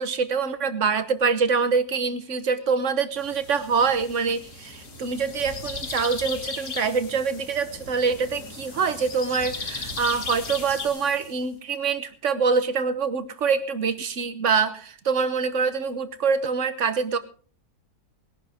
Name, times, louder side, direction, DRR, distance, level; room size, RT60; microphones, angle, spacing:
voice 1, 0.0-17.2, right 5 dB, 50° right, 12 dB, 1.4 m, -25 dB
sound 1, 3.1-11.5, left 2 dB, 85° left, 3.3 m, -42 dB
sound 2, 4.4-6.9 8.9-10.9, left 5 dB, 40° left, 1.4 m, -35 dB
21.0 x 11.0 x 3.6 m, 0.41 s
omnidirectional pair, 1.7 m